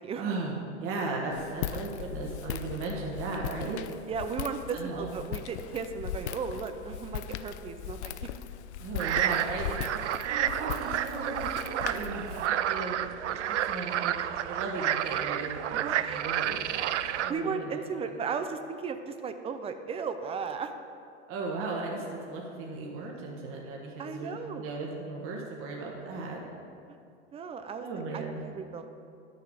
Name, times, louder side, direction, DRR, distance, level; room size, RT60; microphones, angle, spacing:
voice 1, 0.2-3.8 4.7-5.1 8.8-14.2 14.4-17.8 21.3-26.4 27.8-28.4, right 3 dB, 40° right, -2 dB, 1.5 m, -36 dB
Walk footsteps, 1.3-12.5, left 10 dB, 75° left, 0.5 m, -39 dB
voice 2, 4.1-8.3 15.7-16.2 17.3-20.7 24.0-24.7 26.9-27.0 27.3-27.9 28.1-28.8, right 5 dB, 15° right, 8 dB, 0.5 m, -35 dB
Atmo Froschteich, 9.0-17.3, right 11 dB, 85° right, 0.5 m, -30 dB
10.5 x 7.0 x 4.9 m, 2.5 s
hypercardioid pair, 110°, 34 cm